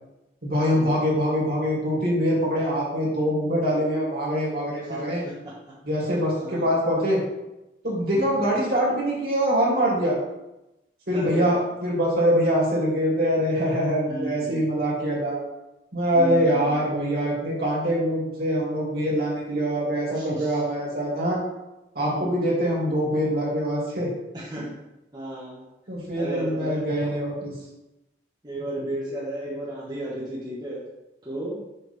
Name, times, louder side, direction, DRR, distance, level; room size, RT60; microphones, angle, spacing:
voice 1, 0.4-5.2 5.8-7.2 7.8-10.2 11.1-15.4 15.9-21.4 21.9-24.1 24.6-24.7 25.9-27.6, equal, 55° right, -5 dB, 2.7 m, -24 dB
voice 2, 4.9-5.5 6.4-6.6 8.1-8.4 11.1-11.5 14.1-14.6 16.1-16.8 20.1-20.6 22.0-22.5 24.3-24.7 25.1-25.6 26.2-27.1 28.4-30.8 31.2-31.6, right 1 dB, 20° right, -8 dB, 1.4 m, -34 dB
6.7 x 5.7 x 3.5 m, 0.95 s
head